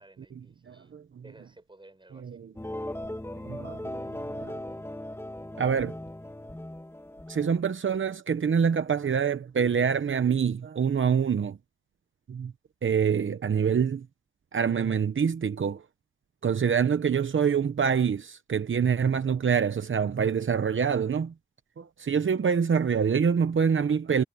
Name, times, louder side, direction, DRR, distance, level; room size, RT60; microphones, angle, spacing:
voice 1, 0.0-2.4, right 2 dB, 25° right, 7.2 m, -55 dB
voice 2, 0.7-1.0 2.2-2.5 3.5-4.6 5.6-6.0 7.3-11.6 12.3-12.5 12.8-14.1 14.5-15.8 16.4-21.3 21.8-24.2, right 7 dB, 75° right, 0.9 m, -26 dB
sound 1, 2.6-7.6, left 1 dB, 10° left, 2.0 m, -38 dB
wide cardioid pair, 95°, 20 cm